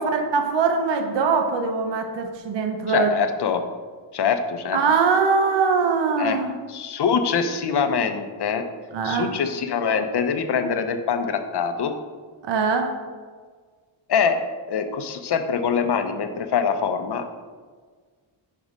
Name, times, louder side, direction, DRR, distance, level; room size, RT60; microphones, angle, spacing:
voice 1, 0.0-3.1 4.7-6.5 8.9-9.3 12.4-12.9, right 5 dB, 60° right, 5 dB, 0.9 m, -22 dB
voice 2, 2.9-3.7 4.1-4.8 6.2-6.4 6.7-8.6 9.0-11.9 14.1-14.4 14.7-17.3, left 6 dB, 55° left, 8 dB, 0.7 m, -24 dB
5.3 x 4.7 x 5.0 m, 1.6 s
cardioid pair, 80°, 49 cm